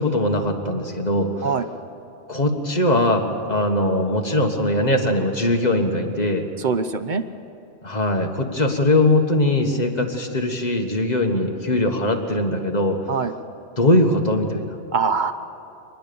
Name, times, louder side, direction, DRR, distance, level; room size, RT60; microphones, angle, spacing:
voice 1, 0.0-1.5 2.3-6.5 7.8-13.0 13.8-14.8, left 1 dB, 35° left, 3 dB, 1.6 m, -21 dB
voice 2, 6.6-7.3 13.1-13.3 14.9-15.3, right 5 dB, 45° right, 9 dB, 0.8 m, -23 dB
23.0 x 20.0 x 7.0 m, 2.7 s
omnidirectional pair, 1.2 m